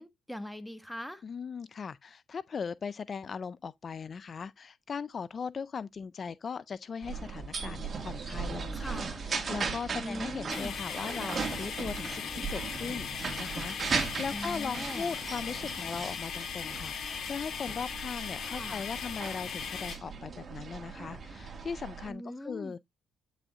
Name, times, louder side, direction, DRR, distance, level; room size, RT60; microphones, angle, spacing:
voice 1, 0.0-1.2 8.7-9.3 10.0-10.7 14.3-15.2 18.5-18.9 22.1-22.7, left 1 dB, 5° left, 1.5 m, -41 dB
voice 2, 1.2-13.1 13.4-22.8, left 6 dB, 45° left, 0.4 m, -39 dB
sound 1, 7.0-22.1, right 5 dB, 40° right, 1.9 m, -38 dB
sound 2, 10.5-20.0, left 7 dB, 60° left, 2.5 m, -38 dB
9.1 x 6.2 x 2.4 m
cardioid pair, 90°, 0 cm